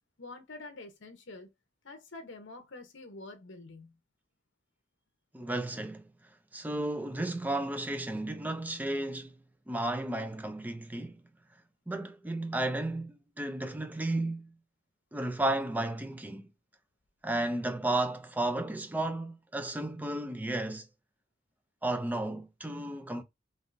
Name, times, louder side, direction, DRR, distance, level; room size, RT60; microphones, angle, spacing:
voice 1, 0.2-1.5 1.8-4.0, left 2 dB, 70° left, 0.8 m, -47 dB
voice 2, 5.3-6.1 6.5-9.3 9.7-11.2 11.9-14.5 15.1-16.5 17.2-20.9 21.8-23.2, right 1 dB, 10° right, 0.4 m, -33 dB
3.5 x 2.6 x 2.6 m
head